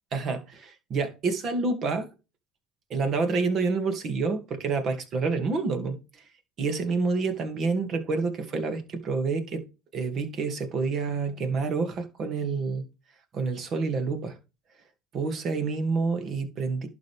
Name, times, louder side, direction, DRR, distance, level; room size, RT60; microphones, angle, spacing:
voice 1, 0.1-2.1 2.9-6.2 6.6-9.6 9.9-12.9 13.3-14.4 15.1-16.9, right 4 dB, 45° right, 2.5 m, -28 dB
11.5 x 5.5 x 3.6 m
supercardioid pair, 100°, 0 cm